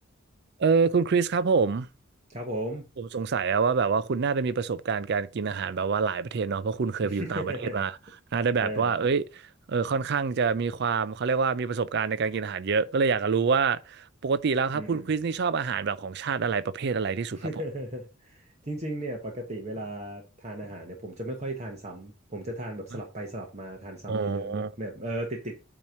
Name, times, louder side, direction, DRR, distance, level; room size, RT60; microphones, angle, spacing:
voice 1, 0.6-1.9 3.0-7.9 8.3-9.4 9.7-17.5 24.1-24.7, right 5 dB, 55° right, 0.4 m, -26 dB
voice 2, 2.3-2.9 7.0-7.8 8.6-9.0 14.7-15.1 17.3-25.6, right 1 dB, 35° right, 1.2 m, -36 dB
8.6 x 3.0 x 6.4 m
head